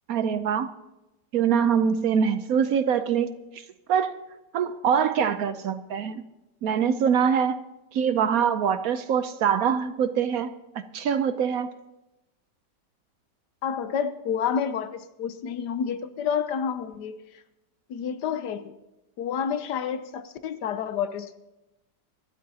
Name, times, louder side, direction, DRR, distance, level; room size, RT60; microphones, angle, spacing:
voice 1, 0.1-0.7 1.3-3.3 3.5-3.6 3.9-4.2 4.5-6.2 6.6-7.6 7.9-10.5 10.9-11.7, right 7 dB, 65° right, 11 dB, 0.9 m, -24 dB
voice 2, 13.6-17.2 17.9-18.7 19.2-21.3, left 7 dB, 75° left, 11 dB, 1.3 m, -29 dB
25.0 x 12.5 x 2.8 m, 0.97 s
omnidirectional pair, 1.9 m